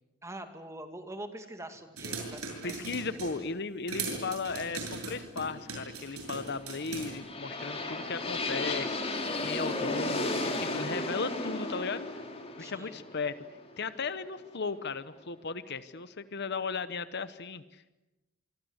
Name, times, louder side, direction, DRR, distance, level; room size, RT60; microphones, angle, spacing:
voice 1, 0.2-2.9 12.6-13.0, right 1 dB, 15° right, 7 dB, 2.2 m, -44 dB
sound 1, 2.0-3.4 3.9-7.1, right 4 dB, 75° right, 7.5 m, -39 dB
voice 2, 2.6-12.1 12.6-13.4 13.8-17.9, left 4 dB, 50° left, 13 dB, 0.9 m, -36 dB
sound 2, 6.6-14.5, left 2 dB, 25° left, 3.1 m, -34 dB
26.0 x 24.5 x 8.1 m, 1.0 s
head